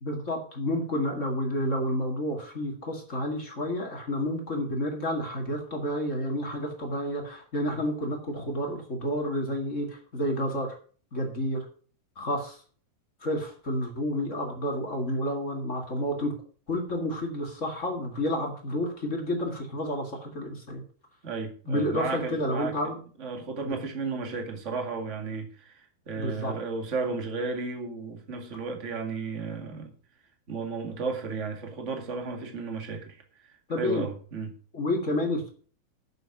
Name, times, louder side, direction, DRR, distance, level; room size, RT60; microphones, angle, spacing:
voice 1, 0.0-10.7 11.1-11.6 12.1-12.6 13.2-16.3 16.7-20.8 21.7-23.0 23.6-23.7 26.1-26.5 33.7-34.1 34.7-35.5, left 1 dB, 30° left, 1.3 m, -30 dB
voice 2, 21.2-22.7 23.2-29.9 30.5-34.5, right 4 dB, 30° right, 1.3 m, -34 dB
11.0 x 6.7 x 6.0 m
omnidirectional pair, 4.6 m